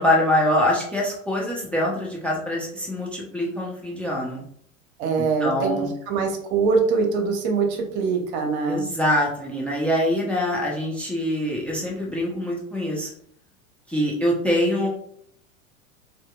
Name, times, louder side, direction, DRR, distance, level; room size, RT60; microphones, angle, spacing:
voice 1, 0.0-4.4 5.2-5.9 8.7-13.1 13.9-14.9, left 1 dB, 5° left, -2 dB, 0.6 m, -24 dB
voice 2, 5.0-5.7 6.1-8.8, right 4 dB, 55° right, 3 dB, 0.9 m, -23 dB
4.2 x 2.8 x 2.3 m, 0.65 s
hypercardioid pair, 90°, 41 cm